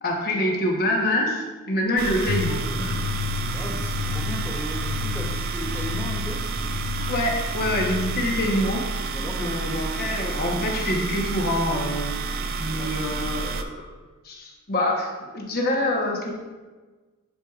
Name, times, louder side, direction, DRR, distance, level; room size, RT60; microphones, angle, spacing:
voice 1, 0.0-3.0 7.1-8.9 9.4-12.1 12.6-13.7 14.2-16.3, left 1 dB, 45° left, -1 dB, 1.1 m, -26 dB
sound 1, 2.0-13.6, right 4 dB, 45° right, 0.4 m, -30 dB
sound 2, 2.3-8.4, left 7 dB, 65° left, 0.5 m, -32 dB
voice 2, 3.5-6.4 9.1-9.6 10.0-10.1 12.8-13.0, equal, 10° left, 1 dB, 0.7 m, -36 dB
10.0 x 4.7 x 2.5 m, 1.3 s
head